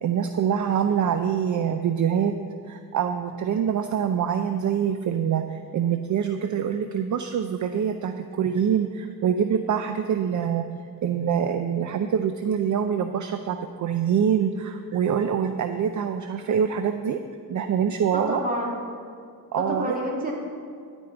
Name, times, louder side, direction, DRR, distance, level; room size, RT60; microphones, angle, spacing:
voice 1, 0.0-2.3 2.7-10.7 11.0-17.2 17.5-18.4 19.5-20.0, right 8 dB, 55° right, 7 dB, 0.6 m, -25 dB
voice 2, 18.1-18.8 19.6-20.3, equal, 25° right, -3 dB, 2.9 m, -28 dB
13.0 x 5.4 x 8.0 m, 2.3 s
cardioid pair, 95°, 36 cm